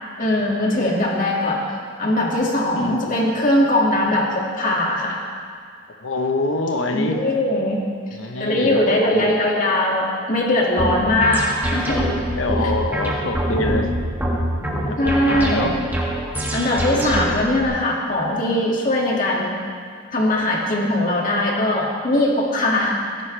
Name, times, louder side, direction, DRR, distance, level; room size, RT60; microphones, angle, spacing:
voice 1, 0.2-1.7 2.0-5.2 6.9-7.8 8.4-11.5 11.7-12.1 15.0-15.8 16.5-19.5 20.1-23.2, left 1 dB, 40° left, -2 dB, 2.2 m, -20 dB
voice 2, 2.7-3.1 6.0-7.2 8.2-9.3 12.4-13.9 14.6-15.7 16.9-17.3, left 2 dB, 70° left, 5 dB, 1.0 m, -25 dB
sound 1, 10.8-17.6, equal, 10° right, 1.8 m, -24 dB
16.5 x 15.0 x 3.4 m, 2.1 s
head